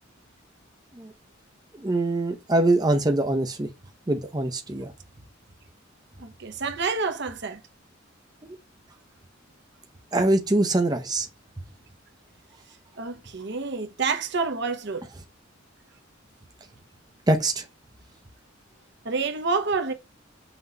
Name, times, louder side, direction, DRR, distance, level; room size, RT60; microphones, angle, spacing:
voice 1, 1.7-3.7 4.1-4.9 8.4-8.6 10.1-11.3 17.3-17.6, right 2 dB, 20° right, 0.7 m, -23 dB
voice 2, 6.2-7.6 13.0-15.1 19.0-19.9, right 4 dB, 60° right, 0.9 m, -28 dB
5.9 x 3.0 x 5.3 m
head